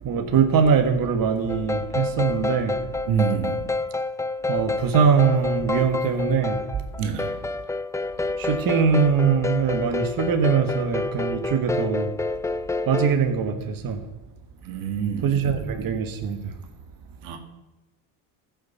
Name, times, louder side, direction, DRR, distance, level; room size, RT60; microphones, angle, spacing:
voice 1, 0.0-2.8 4.5-6.6 8.4-12.1 12.9-14.0 15.2-16.5, right 6 dB, 45° right, 6 dB, 1.6 m, -22 dB
sound 1, 1.5-13.2, left 3 dB, 10° left, 0.3 m, -28 dB
voice 2, 3.1-3.6 7.0-7.3 14.6-15.3 17.2-17.4, right 7 dB, 85° right, 5 dB, 2.1 m, -26 dB
15.0 x 6.6 x 7.0 m, 1.1 s
supercardioid pair, 95°, 47 cm